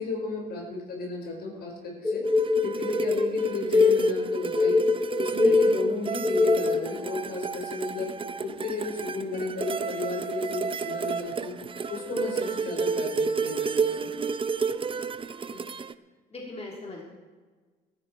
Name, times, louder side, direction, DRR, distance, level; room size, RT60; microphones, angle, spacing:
voice 1, 0.0-2.2 2.6-4.8 5.2-8.1 8.4-11.6 11.9-14.1, left 3 dB, 60° left, 0 dB, 4.5 m, -33 dB
sound 1, 2.0-6.9, left 3 dB, 10° left, 1.4 m, -23 dB
sound 2, 2.3-15.9, right 5 dB, 30° right, 0.7 m, -31 dB
voice 2, 16.3-17.0, left 2 dB, 35° left, -2 dB, 3.5 m, -40 dB
14.5 x 13.5 x 4.4 m, 1.4 s
supercardioid pair, 70°, 18 cm